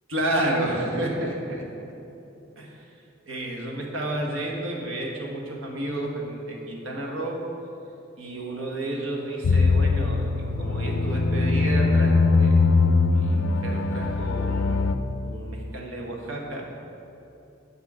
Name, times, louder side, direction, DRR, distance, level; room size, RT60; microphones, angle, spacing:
voice 1, 0.1-1.9 2.6-2.8 3.3-7.4 8.2-10.3 10.6-12.6 13.1-14.9 15.2-16.7, right 1 dB, 90° right, 0 dB, 1.3 m, -31 dB
sound 1, 9.4-14.9, left 3 dB, 80° left, 0.4 m, -21 dB
8.3 x 5.6 x 4.8 m, 2.8 s
head